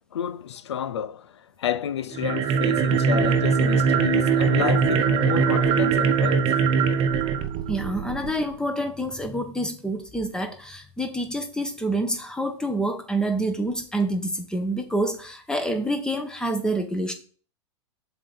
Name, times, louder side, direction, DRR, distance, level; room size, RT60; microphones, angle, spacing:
voice 1, 0.1-1.3 1.6-6.5, left 9 dB, 75° left, 0.6 m, -29 dB
sound 1, 2.1-8.4, right 6 dB, 35° right, 0.9 m, -21 dB
voice 2, 7.7-17.1, right 1 dB, 5° left, 1.3 m, -27 dB
7.4 x 4.1 x 6.8 m
hypercardioid pair, 95°, 14 cm